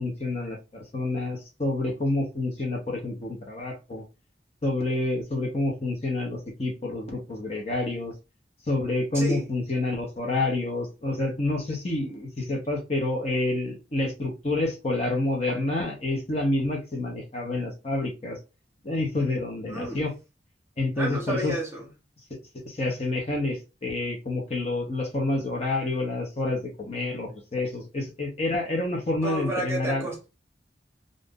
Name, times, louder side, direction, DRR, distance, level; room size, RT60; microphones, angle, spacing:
voice 1, 0.0-4.0 4.6-8.1 8.7-18.4 18.8-20.1 20.8-21.5 22.6-30.1, left 2 dB, 35° left, 0.9 m, -28 dB
voice 2, 9.1-9.5 19.7-20.0 21.0-21.9 29.2-30.2, right 1 dB, 15° right, 0.9 m, -30 dB
2.6 x 2.5 x 3.6 m
head